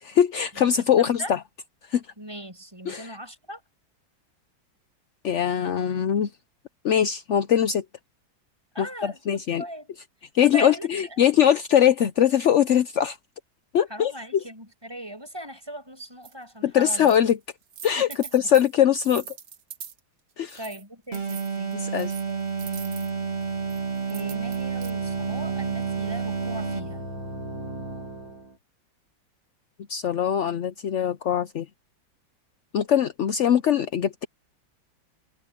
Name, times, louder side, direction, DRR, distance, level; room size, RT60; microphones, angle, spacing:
voice 1, 0.0-1.4 1.9-2.0 2.9-3.2 5.2-6.3 6.8-7.8 8.8-9.6 10.3-13.2 13.7-14.1 16.6-17.4 17.8-19.4 20.4-20.6 21.7-22.1 29.9-31.7 32.7-34.2, left 9 dB, 70° left, 0.6 m, -22 dB
voice 2, 1.0-1.3 2.2-3.6 8.7-9.9 10.4-10.9 11.2-11.3 13.9-17.1 18.0-18.5 20.6-21.8 22.3-23.1 24.1-27.0, right 1 dB, 10° right, 6.4 m, -39 dB
sound 1, 16.2-16.3 16.9-17.3 17.6-20.0 20.5-20.8 21.1-23.1 23.7-24.9, right 8 dB, 55° right, 1.6 m, -42 dB
sound 2, 21.1-27.0, right 5 dB, 30° right, 2.3 m, -30 dB
sound 3, 21.7-28.6, equal, 70° right, 3.9 m, -39 dB
omnidirectional pair, 2.1 m